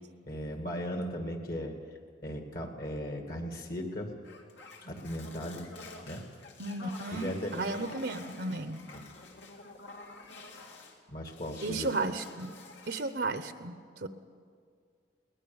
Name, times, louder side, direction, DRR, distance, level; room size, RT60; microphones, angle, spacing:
voice 1, 0.3-1.8 2.2-4.1 4.8-5.7 6.0-6.3 7.1-7.6 8.9-9.1 11.1-11.9, equal, 50° left, 3 dB, 2.2 m, -37 dB
sound 1, 4.2-11.0 11.3-13.2, left 3 dB, 75° left, 2.8 m, -49 dB
voice 2, 6.6-8.8 11.6-12.5 12.9-14.1, right 3 dB, 60° right, 10 dB, 0.9 m, -34 dB
22.5 x 19.0 x 7.2 m, 2.2 s
head